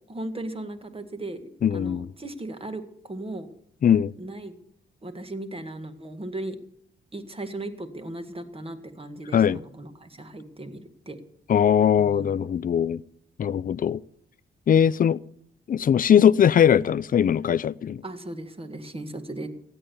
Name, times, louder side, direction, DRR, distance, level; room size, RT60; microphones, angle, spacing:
voice 1, 0.1-3.5 4.2-4.5 5.0-6.6 7.1-11.2 11.9-12.4 18.0-19.5, right 2 dB, 30° right, 1.8 m, -37 dB
voice 2, 1.6-2.1 3.8-4.1 9.3-9.6 11.5-13.0 13.4-14.0 14.7-15.2 15.7-18.0, left 8 dB, 45° left, 0.5 m, -20 dB
15.5 x 8.9 x 7.1 m
cardioid pair, 75°, 20 cm